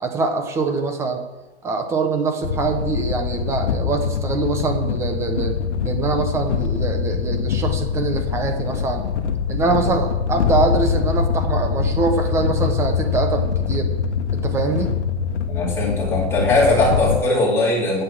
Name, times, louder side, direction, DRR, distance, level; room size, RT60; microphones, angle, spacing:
voice 1, 0.0-1.2 1.6-5.6 5.8-9.0 9.5-13.9 14.3-14.9, right 4 dB, 10° right, 5 dB, 0.9 m, -24 dB
sound 1, 2.4-17.2, left 6 dB, 85° left, 1.3 m, -23 dB
voice 2, 15.5-18.0, left 2 dB, 5° left, -6 dB, 3.9 m, -19 dB
9.9 x 9.2 x 7.8 m, 1.1 s
hypercardioid pair, 165°, 34 cm